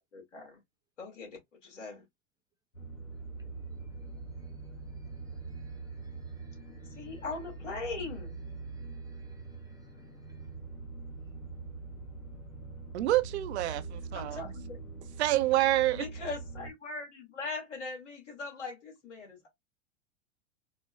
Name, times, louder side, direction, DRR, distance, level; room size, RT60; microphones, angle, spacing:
voice 1, 0.1-0.6 1.0-2.0 6.9-8.4 14.1-14.8 15.9-19.5, left 3 dB, 70° left, 2.1 m, -40 dB
sound 1, 2.7-16.7, right 4 dB, 85° left, 1.3 m, -43 dB
voice 2, 5.0-7.1 8.7-10.0, right 2 dB, 10° right, 0.7 m, -68 dB
voice 3, 12.9-14.4 15.2-16.0, right 15 dB, 60° right, 0.5 m, -27 dB
4.3 x 2.1 x 2.3 m
figure-of-eight pair, 95°, 38 cm